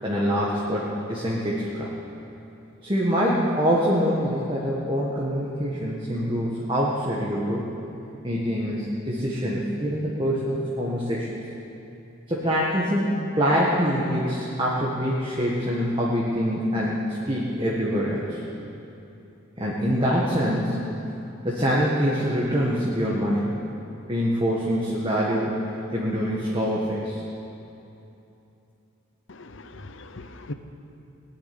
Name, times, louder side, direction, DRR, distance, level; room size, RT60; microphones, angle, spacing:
voice 1, 0.0-1.9 2.8-7.6 8.2-11.3 12.3-18.4 19.6-20.8 21.4-23.5 24.1-25.5 25.9-27.2, equal, 20° right, -5 dB, 1.5 m, -25 dB
voice 2, 29.4-30.5, left 2 dB, 60° left, 9 dB, 0.8 m, -39 dB
19.0 x 7.3 x 9.9 m, 2.9 s
head